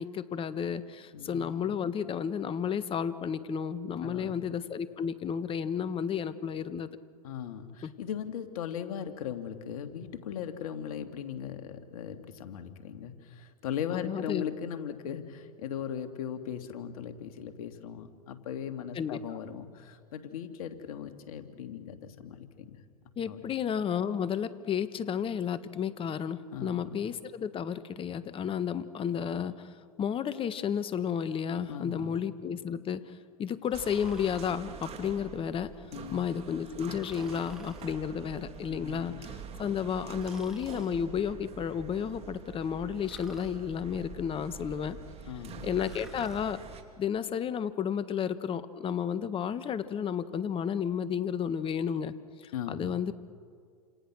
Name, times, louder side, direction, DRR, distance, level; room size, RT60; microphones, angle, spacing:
voice 1, 0.0-6.9 7.8-7.9 13.9-14.4 18.9-19.2 23.2-29.7 30.0-35.7 36.1-45.0 45.6-46.6 47.0-52.1 52.4-53.1, left 8 dB, 25° left, 13 dB, 1.4 m, -32 dB
voice 2, 1.1-1.7 4.0-4.4 7.2-22.8 23.3-23.4 26.5-26.9 31.7-32.2 35.9-36.4 38.7-39.3 45.3-45.7 52.5-52.9, left 9 dB, 65° left, 7 dB, 2.5 m, -38 dB
Breathing, 33.7-34.6 36.9-37.9 40.2-40.9 43.0-43.5 45.7-46.4, right 1 dB, ahead, 3.2 m, -50 dB
sound 1, 33.7-46.8, right 6 dB, 30° right, 2.8 m, -46 dB
29.0 x 27.5 x 6.3 m, 2.1 s
hypercardioid pair, 100°, 19 cm